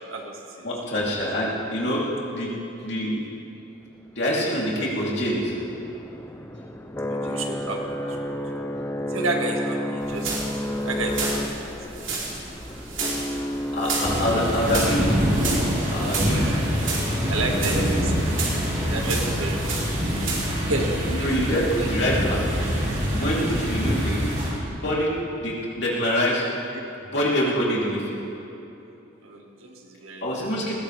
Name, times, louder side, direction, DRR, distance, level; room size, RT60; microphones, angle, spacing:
voice 1, 0.1-0.7 7.1-8.3 9.1-12.1 16.2-16.6 17.3-19.9 20.6-21.7 29.2-30.7, right 2 dB, 85° right, 1 dB, 1.9 m, -32 dB
voice 2, 0.6-2.1 2.3-2.5 2.8-3.2 4.1-5.5 13.7-15.3 15.9-16.6 21.1-22.4 23.1-24.2 24.6-25.1 25.4-26.4 27.1-28.2 30.2-30.7, equal, 55° left, -5 dB, 3.3 m, -25 dB
sound 1, 4.1-20.4, left 1 dB, 10° left, 0.5 m, -33 dB
sound 2, 10.0-20.6, right 3 dB, 65° right, 3.4 m, -32 dB
sound 3, 14.0-24.5, equal, 35° right, 3.5 m, -25 dB
20.5 x 16.0 x 3.4 m, 3.0 s
head